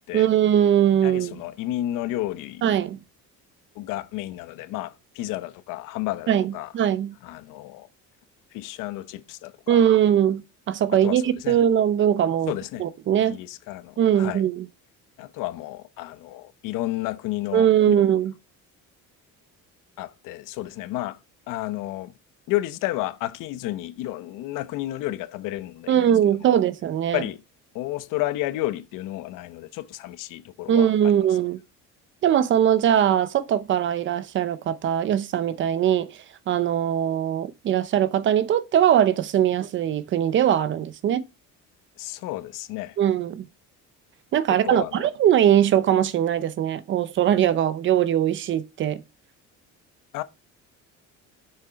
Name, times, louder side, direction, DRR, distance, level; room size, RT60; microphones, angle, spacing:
voice 1, 0.1-1.4 2.6-3.0 6.3-7.2 9.7-12.5 12.8-13.4 14.0-14.6 17.5-18.3 25.9-27.2 30.7-31.6 32.2-36.1 36.5-41.3 43.0-43.4 44.3-49.0, right 10 dB, 40° right, 0.6 m, -21 dB
voice 2, 1.0-2.6 3.7-6.7 7.2-7.9 8.5-9.8 10.9-11.6 12.5-12.9 13.2-14.4 15.2-18.0 20.0-21.2 21.5-22.1 22.5-26.1 26.4-26.6 27.1-27.4 27.7-30.9 42.0-43.0 44.6-45.1 50.1-50.2, left 15 dB, 85° left, 1.0 m, -31 dB
7.0 x 6.5 x 4.5 m
cardioid pair, 175°, 31 cm